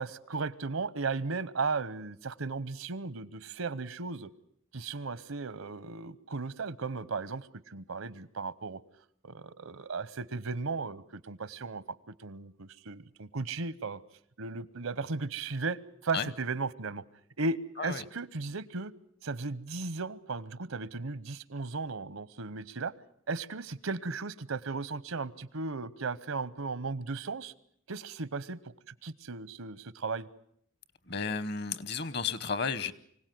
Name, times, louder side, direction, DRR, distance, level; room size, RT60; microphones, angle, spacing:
voice 1, 0.0-4.3 4.7-8.8 9.2-14.0 14.4-17.0 17.4-18.9 19.2-22.9 23.3-27.5 27.9-28.6 28.9-30.3, right 4 dB, 80° right, 18 dB, 0.9 m, -36 dB
voice 2, 31.1-32.9, left 5 dB, 50° left, 16 dB, 1.0 m, -33 dB
24.5 x 17.0 x 9.3 m, 0.67 s
head